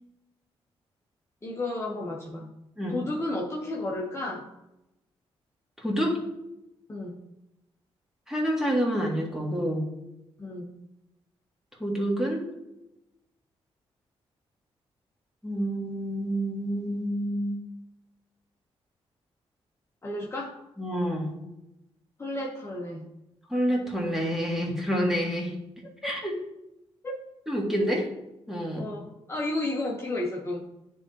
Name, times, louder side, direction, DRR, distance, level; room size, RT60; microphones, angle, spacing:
voice 1, 1.4-2.5 2.9-4.5 6.9-7.2 10.4-10.7 20.0-20.6 22.2-23.0 26.0-26.1 27.0-27.2 28.8-30.7, left 2 dB, 25° left, -3 dB, 1.0 m, -32 dB
voice 2, 5.8-6.2 8.3-9.8 11.8-12.5 15.4-17.6 20.8-21.4 23.5-25.5 26.0-26.3 27.5-28.1 28.5-28.9, equal, 5° right, -1 dB, 1.8 m, -28 dB
9.6 x 3.6 x 2.9 m, 0.92 s
cardioid pair, 70°, 11 cm